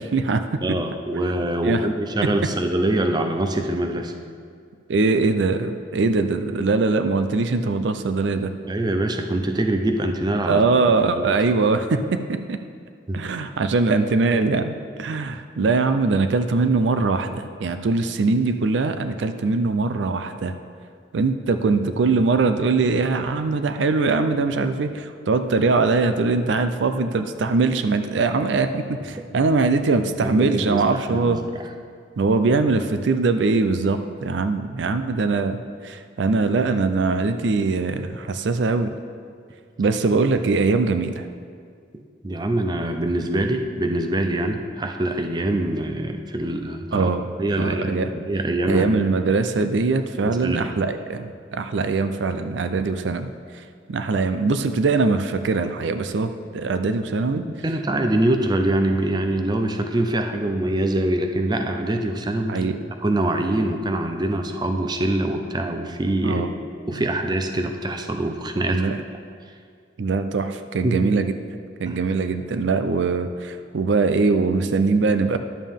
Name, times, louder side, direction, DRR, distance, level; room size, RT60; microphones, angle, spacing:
voice 1, 0.0-0.6 1.6-1.9 2.2-2.4 4.9-8.5 10.5-12.6 13.1-20.5 21.1-31.4 32.2-35.6 35.8-39.0 39.8-41.3 46.9-47.3 47.6-48.1 48.6-53.3 53.9-57.4 62.5-62.8 66.2-66.5 68.7-69.0 70.0-71.3 71.8-75.4, right 3 dB, 70° right, 9 dB, 0.4 m, -22 dB
voice 2, 0.6-4.1 8.7-10.6 11.0-11.4 13.1-13.2 29.2-29.3 30.2-31.6 41.9-47.1 47.4-49.2 50.2-50.7 57.4-62.7 63.0-66.5 66.9-68.8 70.8-71.1 71.9-72.0, right 1 dB, 25° right, 5 dB, 0.5 m, -24 dB
11.0 x 7.2 x 3.6 m, 2.2 s
head